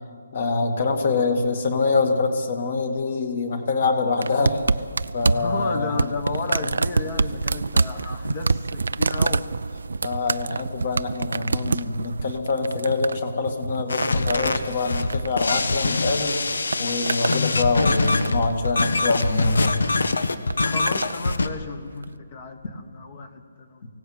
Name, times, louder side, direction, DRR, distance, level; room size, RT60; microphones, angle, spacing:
voice 1, 0.3-4.6 5.1-6.0 10.0-16.4 16.8-19.8, left 3 dB, 35° left, 6 dB, 2.2 m, -25 dB
sound 1, 4.2-16.1 16.4-17.4 17.8-18.5 19.4-19.7 20.5-21.2 22.0-22.1, right 4 dB, 75° right, 0.6 m, -27 dB
voice 2, 5.3-9.4 20.6-23.9, left 4 dB, 20° left, 8 dB, 1.3 m, -33 dB
sound 2, 13.9-21.5, left 3 dB, 80° left, 1.4 m, -24 dB
24.0 x 17.0 x 8.9 m, 2.1 s
hypercardioid pair, 180°, 0 cm